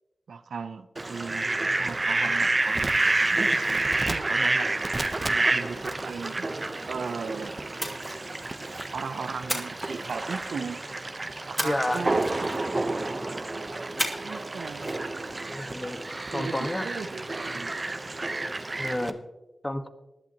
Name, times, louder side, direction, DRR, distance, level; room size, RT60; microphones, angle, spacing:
voice 1, 0.3-4.7 5.2-6.5 6.9-7.6 8.9-10.8 11.4-12.5 14.2-14.9 16.1-17.8, right 5 dB, 80° right, 10 dB, 0.7 m, -37 dB
Fowl, 1.0-19.1, right 2 dB, 40° right, 0.9 m, -29 dB
Splash splatter, 7.8-9.0 9.5-10.7 11.6-12.8 14.0-14.5 14.7-15.0, equal, ahead, 2.7 m, -34 dB
voice 2, 11.6-12.0 15.5-16.0 16.3-16.9 18.8-19.2 19.6-19.9, left 1 dB, 20° left, 7 dB, 1.5 m, -30 dB
19.5 x 11.5 x 3.0 m, 1.0 s
cardioid pair, 40°, 0 cm